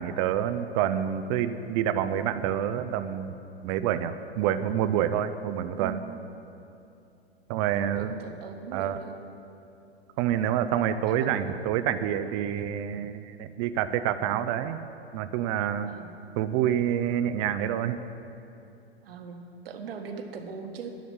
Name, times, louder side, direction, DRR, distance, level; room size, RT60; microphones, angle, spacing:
voice 1, 0.0-3.3 3.6-6.0 7.5-8.1 8.7-9.0 10.2-14.8 15.1-15.9 16.4-18.0, right 10 dB, 30° right, 11 dB, 0.5 m, -27 dB
voice 2, 5.8-6.2 7.7-9.2 11.1-11.3 15.9-16.1 19.0-21.0, right 5 dB, 65° right, 5 dB, 1.4 m, -40 dB
11.0 x 7.1 x 8.8 m, 2.7 s
figure-of-eight pair, 105°, 32 cm